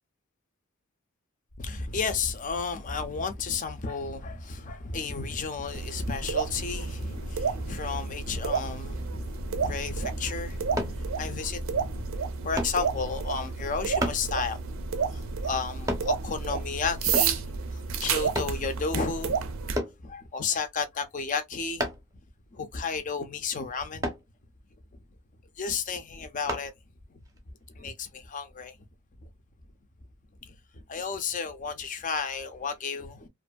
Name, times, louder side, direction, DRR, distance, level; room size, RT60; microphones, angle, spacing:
voice 1, 1.6-12.0 12.4-14.8 15.1-19.4 20.0-21.9 22.5-24.1 25.6-26.7 27.1-27.2 27.8-28.8 29.2-29.3 30.4-33.3, left 5 dB, 35° left, 0.5 m, -33 dB
sound 1, 5.7-19.8, right 5 dB, 65° right, 0.5 m, -31 dB
sound 2, 10.8-11.0 12.6-12.8 14.0-14.3 15.9-16.1 17.1-17.4 18.4-18.6 19.8-20.0 21.8-22.1 24.0-24.3 26.5-26.7 27.3-27.4, equal, 15° right, 0.7 m, -30 dB
2.5 x 2.5 x 2.2 m
head